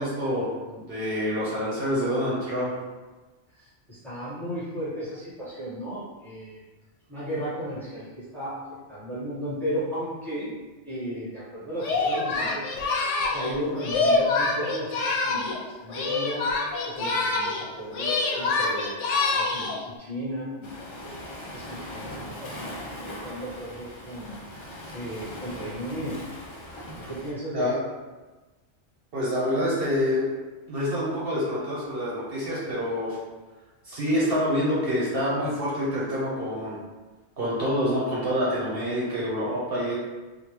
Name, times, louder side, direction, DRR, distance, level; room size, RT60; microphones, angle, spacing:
voice 1, 0.0-2.7 27.5-27.8 29.1-30.3 30.7-33.2 33.8-36.8 37.4-39.9, equal, 55° right, -7 dB, 1.0 m, -27 dB
voice 2, 3.5-6.6 7.1-10.5 10.8-12.7 13.3-16.5 16.8-21.2 21.5-24.3 24.9-26.3 27.1-27.7, equal, ahead, -9 dB, 1.0 m, -35 dB
Singing, 11.8-15.6 15.9-17.7 17.9-19.8, left 3 dB, 90° left, 0.9 m, -26 dB
Waves surf, 20.6-27.3, left 1 dB, 45° left, 0.4 m, -40 dB
3.5 x 2.3 x 3.0 m, 1.2 s
omnidirectional pair, 1.2 m